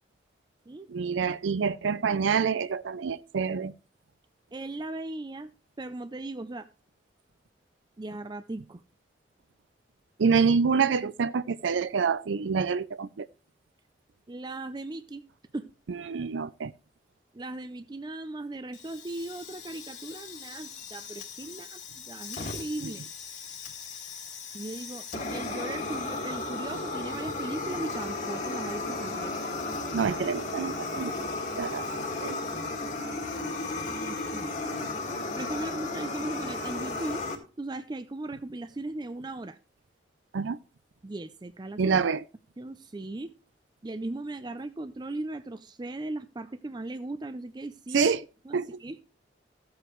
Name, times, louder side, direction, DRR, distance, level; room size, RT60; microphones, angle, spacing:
voice 1, 0.9-3.7 10.2-13.3 15.9-16.7 22.8-22.9 29.9-31.1 31.6-31.8 32.2-32.4 40.3-40.6 41.8-42.2 47.9-48.2 48.5-48.8, right 5 dB, 85° right, 0.5 m, -27 dB
voice 2, 4.5-5.5 5.8-6.7 8.0-8.8 14.3-15.2 15.5-15.7 17.3-23.0 24.5-29.3 33.8-34.5 35.1-37.2 37.6-39.6 41.0-42.0 42.6-43.3 43.8-48.1 48.4-49.0, right 2 dB, 25° right, 0.4 m, -38 dB
Fire, 18.7-37.3, left 3 dB, 40° left, 2.0 m, -35 dB
15.0 x 7.9 x 3.1 m
head